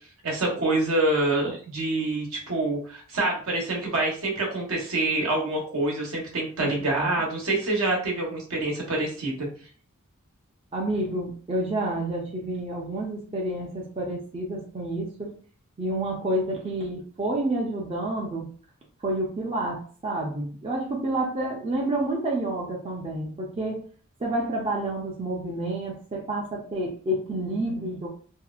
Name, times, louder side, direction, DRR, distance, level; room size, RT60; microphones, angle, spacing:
voice 1, 0.2-9.5, right 2 dB, 70° right, -2 dB, 0.9 m, -26 dB
voice 2, 6.6-7.1 10.7-15.3 15.8-18.5 19.0-23.8 24.2-28.1, right 1 dB, 25° right, -2 dB, 0.4 m, -29 dB
2.6 x 2.1 x 2.3 m, 0.43 s
head